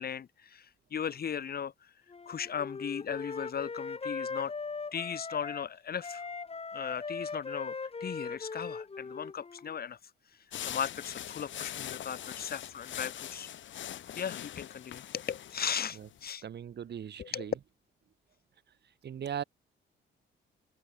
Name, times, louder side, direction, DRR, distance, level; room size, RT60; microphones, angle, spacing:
voice 1, 0.0-1.9 2.3-4.5 4.9-6.2 6.7-10.0 10.7-13.5 14.1-16.4 17.2-17.5, left 8 dB, 50° left, 2.8 m, -37 dB
Wind instrument woodwind instrument, 2.1-5.7 6.0-9.8, left 4 dB, 30° left, 3.9 m, -39 dB
sound 1, 10.5-16.2, left 11 dB, 70° left, 4.6 m, -42 dB
voice 2, 16.4-17.5 19.0-19.4, right 9 dB, 60° right, 4.3 m, -39 dB
cardioid pair, 90°, 20 cm